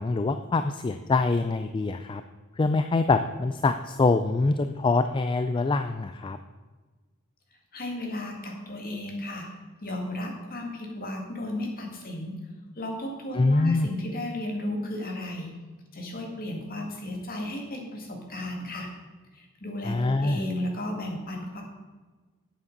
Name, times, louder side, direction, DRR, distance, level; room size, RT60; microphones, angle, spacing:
voice 1, 0.0-2.2 2.6-6.4 13.3-13.9 19.8-20.4, left 3 dB, 20° left, 9 dB, 0.3 m, -24 dB
voice 2, 7.7-9.5 9.8-12.4 12.8-15.5 15.9-18.9 19.3-21.6, left 1 dB, 45° left, 1 dB, 2.1 m, -34 dB
8.5 x 7.2 x 6.6 m, 1.3 s
head